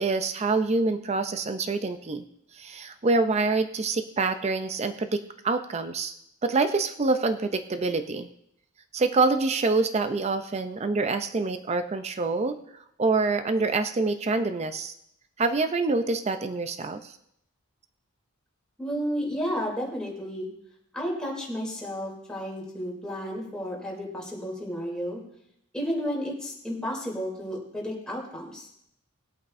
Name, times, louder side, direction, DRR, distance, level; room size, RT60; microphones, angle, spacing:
voice 1, 0.0-2.2 2.5-6.1 6.4-8.3 8.9-12.6 13.0-14.9 15.4-17.2, right 3 dB, 30° right, 9 dB, 0.4 m, -26 dB
voice 2, 18.8-20.5 20.9-25.2 25.7-28.7, equal, 5° left, -3 dB, 2.9 m, -32 dB
20.0 x 8.6 x 2.6 m, 0.75 s
head